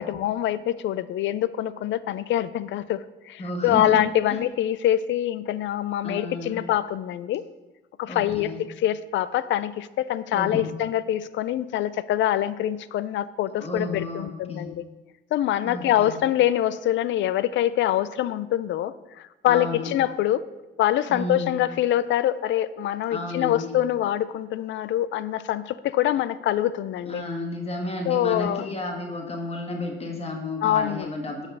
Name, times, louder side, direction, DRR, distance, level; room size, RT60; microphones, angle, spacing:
voice 1, 0.0-7.4 8.0-8.5 8.8-14.8 15.3-20.4 20.8-27.2 28.1-28.7 30.6-31.1, left 12 dB, 70° left, 17 dB, 0.4 m, -25 dB
voice 2, 3.4-4.0 4.3-4.4 6.0-6.6 8.1-8.6 10.3-10.7 13.6-14.7 15.6-16.2 19.5-19.9 21.1-21.6 23.1-23.7 27.1-31.5, left 2 dB, 30° left, 3 dB, 1.5 m, -32 dB
6.3 x 5.3 x 5.4 m, 1.1 s
cardioid pair, 90°, 20 cm